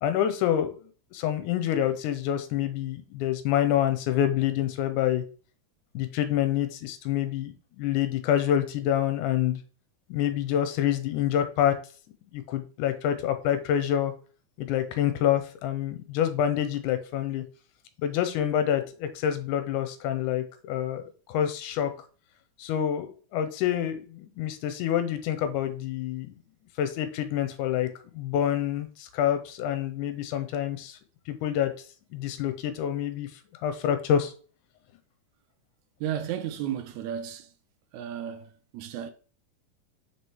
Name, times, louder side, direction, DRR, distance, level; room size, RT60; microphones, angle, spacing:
voice 1, 0.0-0.8 1.1-5.2 5.9-9.6 10.1-11.8 12.3-14.1 14.6-17.4 18.0-21.9 22.6-26.3 26.8-27.9 28.2-31.0 31.3-31.7 32.1-33.3 33.6-34.3, left 10 dB, 90° left, 2.1 m, -27 dB
voice 2, 36.0-37.5 37.9-39.1, right 10 dB, 75° right, 1.8 m, -33 dB
6.2 x 5.0 x 3.1 m
omnidirectional pair, 3.6 m